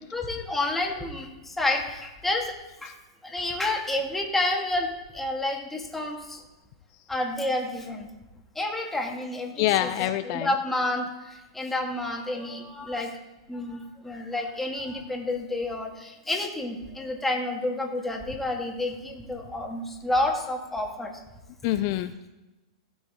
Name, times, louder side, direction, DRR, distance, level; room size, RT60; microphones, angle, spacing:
voice 1, 0.0-2.5 2.8-2.9 3.2-6.4 7.1-8.1 8.6-13.1 13.5-21.1, left 2 dB, 5° left, 0 dB, 1.8 m, -30 dB
voice 2, 9.6-10.5 21.6-22.3, left 14 dB, 50° left, 10 dB, 0.4 m, -26 dB
15.0 x 6.1 x 3.6 m, 1.1 s
hypercardioid pair, 130°, 3 cm